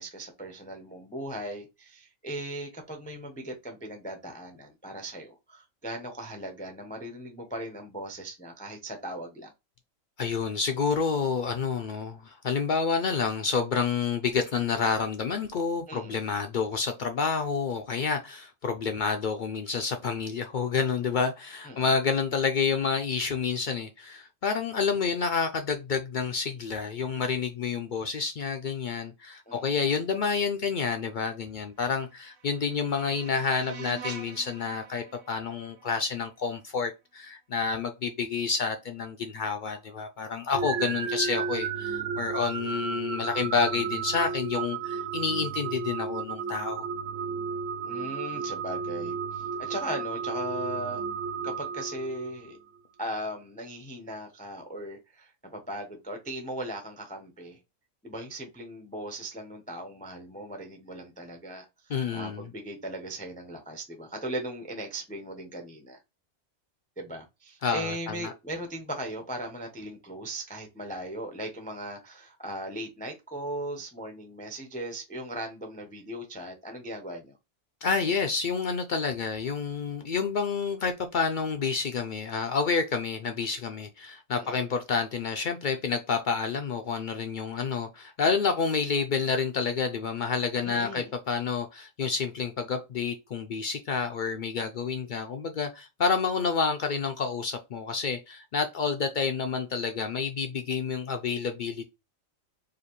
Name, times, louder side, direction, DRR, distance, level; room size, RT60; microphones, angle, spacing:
voice 1, 0.0-9.5 15.9-16.2 21.7-21.8 29.5-29.8 47.8-51.0 51.4-52.5 53.0-57.6 58.0-61.7 62.1-66.0 67.0-77.3 84.3-84.6 90.6-91.1, right 1 dB, 10° left, 0.4 m, -38 dB
voice 2, 10.2-46.9 61.9-62.5 67.6-68.3 77.8-101.8, left 5 dB, 75° left, 0.4 m, -29 dB
sound 1, 31.8-36.8, right 5 dB, 50° right, 0.9 m, -46 dB
sound 2, 40.5-52.5, right 5 dB, 75° right, 0.9 m, -33 dB
4.9 x 2.5 x 3.0 m
omnidirectional pair, 1.4 m